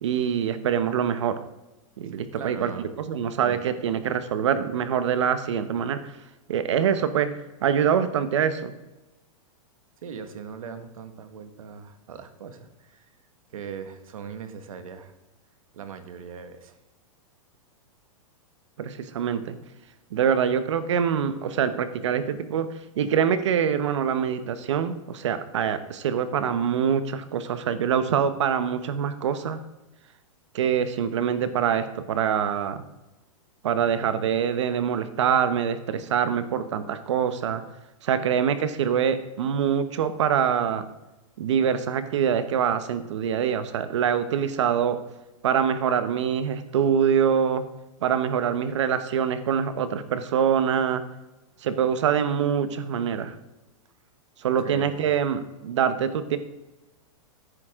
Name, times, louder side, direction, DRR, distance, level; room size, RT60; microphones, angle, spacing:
voice 1, 0.0-1.4 2.0-2.7 3.1-6.1 6.5-7.3 7.6-8.7 18.8-19.6 20.1-22.7 23.0-29.6 30.5-32.8 33.6-37.6 38.0-40.9 41.4-45.0 45.4-47.6 48.0-51.0 51.6-53.3 54.4-56.4, right 8 dB, 60° right, 11 dB, 1.1 m, -24 dB
voice 2, 2.3-2.9 3.4-3.6 10.0-13.1 13.5-15.1 15.7-16.8 54.6-55.1, right 6 dB, 85° right, 8 dB, 1.7 m, -39 dB
16.5 x 9.8 x 3.7 m, 1.0 s
supercardioid pair, 180°, 17 cm